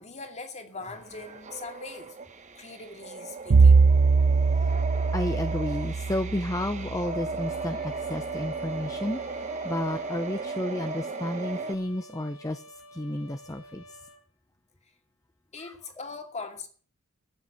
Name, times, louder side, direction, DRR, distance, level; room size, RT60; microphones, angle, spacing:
voice 1, 0.0-2.2 2.5-3.8 10.4-10.5 11.6-11.7 15.5-16.7, left 3 dB, 35° left, 2.5 m, -41 dB
sound 1, 0.9-11.8, right 4 dB, 35° right, 1.4 m, -36 dB
Bowed string instrument, 3.5-7.7, right 4 dB, 85° right, 0.6 m, -22 dB
voice 2, 5.1-12.6 12.9-13.8 15.6-15.7, left 1 dB, 15° left, 0.8 m, -32 dB
Trumpet, 7.4-14.2, left 1 dB, 85° left, 3.0 m, -50 dB
13.5 x 8.9 x 7.8 m
head